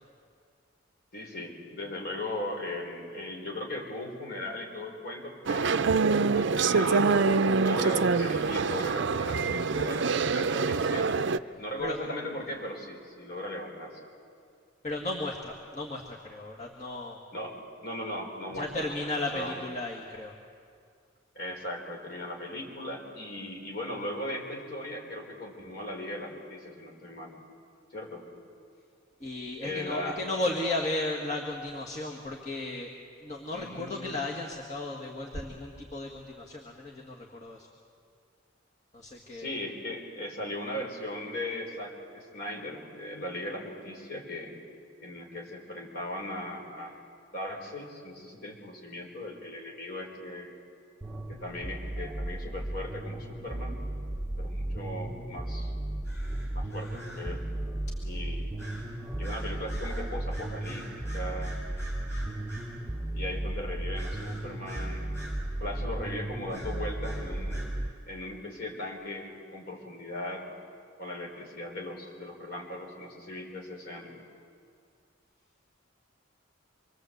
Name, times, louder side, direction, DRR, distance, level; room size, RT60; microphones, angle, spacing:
voice 1, 1.1-6.0 6.3-11.1 11.6-14.0 17.3-19.1 19.3-19.6 21.3-27.3 27.9-28.3 29.6-30.2 33.5-34.2 39.3-44.5 45.0-47.0 47.3-50.5 51.3-53.8 54.4-55.7 56.5-57.5 58.0-58.5 59.2-61.6 63.1-65.1 65.6-67.6 68.1-70.5 71.0-74.1, left 1 dB, 50° left, 0 dB, 4.8 m, -38 dB
sound 1, 5.5-11.4, right 4 dB, 60° right, 0.5 m, -25 dB
voice 2, 11.5-12.0 14.8-17.2 18.5-20.3 29.2-32.9 33.2-37.7 38.9-39.6, left 2 dB, 35° left, -1 dB, 1.9 m, -35 dB
sound 2, 51.0-67.9, right 1 dB, 5° right, 0.8 m, -35 dB
sound 3, 56.0-57.3 58.6-58.9 59.2-62.7 64.0-65.4 66.5-67.7, right 1 dB, 15° left, 7.9 m, -47 dB
26.0 x 22.5 x 8.1 m, 2.2 s
head